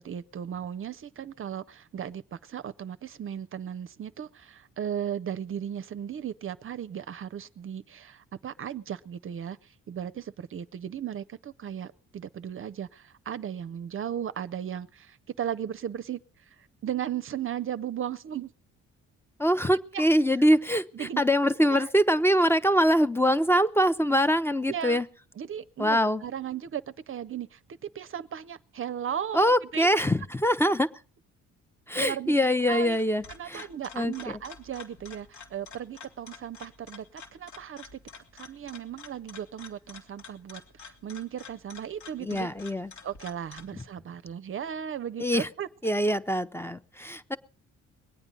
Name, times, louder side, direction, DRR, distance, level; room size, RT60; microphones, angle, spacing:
voice 1, 0.0-9.6 9.9-16.2 16.8-18.5 19.9-20.0 20.9-21.2 21.7-21.9 24.7-25.0 25.4-27.6 27.9-29.9 32.0-32.3 32.7-33.0 33.4-38.0 38.3-42.5 43.0-45.7, right 9 dB, 45° right, 13 dB, 0.6 m, -36 dB
voice 2, 19.4-25.1 25.8-26.2 29.3-30.9 31.9-33.7 33.9-34.4 42.2-42.9 45.2-45.5 45.8-47.4, equal, 10° left, 13 dB, 0.6 m, -24 dB
sound 1, 32.7-43.8, left 5 dB, 80° left, 2.2 m, -49 dB
22.0 x 8.8 x 5.3 m, 0.41 s
cardioid pair, 90°, 30 cm